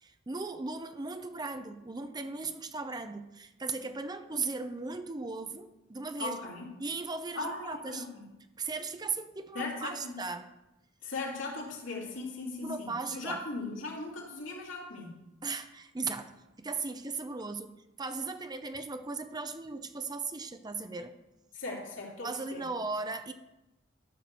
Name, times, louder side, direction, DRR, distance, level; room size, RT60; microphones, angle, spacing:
voice 1, 0.0-6.3 6.8-8.1 8.6-10.5 12.6-13.4 15.4-17.7 18.0-21.2 22.2-23.3, right 4 dB, 20° right, 9 dB, 0.6 m, -37 dB
voice 2, 6.2-6.7 7.3-8.2 9.5-10.2 11.0-15.2 21.5-22.6, left 3 dB, 90° left, -2 dB, 3.0 m, -38 dB
13.0 x 4.7 x 6.8 m, 0.95 s
head